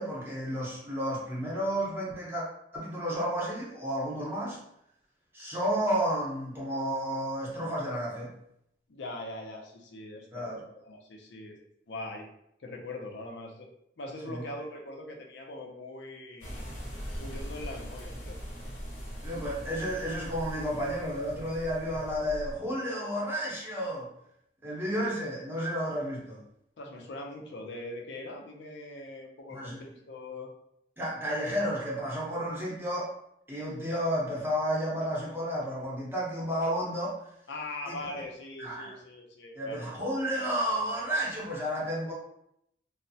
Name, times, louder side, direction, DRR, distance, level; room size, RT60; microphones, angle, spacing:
voice 1, 0.0-2.4 2.7-4.6 5.3-8.3 10.3-10.6 14.3-14.4 19.2-24.1 24.6-26.4 29.5-29.8 31.0-33.1 33.5-37.2 37.9-38.0 38.6-39.0 39.5-42.1, equal, 15° right, -5 dB, 0.7 m, -32 dB
voice 2, 8.9-11.6 11.9-12.3 12.6-13.7 14.0-16.6 17.2-18.4 26.8-30.5 37.5-39.9, left 2 dB, 90° left, 2 dB, 0.5 m, -41 dB
sound 1, 16.4-22.5, equal, 45° left, 0.8 m, -40 dB
3.1 x 2.0 x 2.6 m, 0.75 s
head